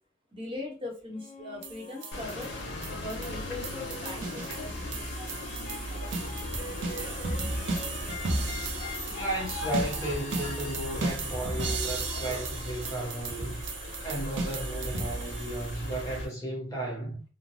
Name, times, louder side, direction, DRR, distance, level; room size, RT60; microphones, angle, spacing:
voice 1, 0.3-2.5 2.9-7.2 8.1-8.2 9.8-9.9 11.3-11.4 13.3-13.6, left 2 dB, 25° right, 0.9 m, -41 dB
sound 1, 1.1-12.2, left 3 dB, 35° left, 0.3 m, -45 dB
sound 2, 1.6-16.2, right 3 dB, 70° right, 0.6 m, -36 dB
sound 3, 2.1-16.3, left 1 dB, 70° left, 1.0 m, -38 dB
voice 2, 9.1-13.6 14.0-17.2, right 1 dB, 20° left, 0.8 m, -34 dB
3.2 x 2.1 x 2.6 m
head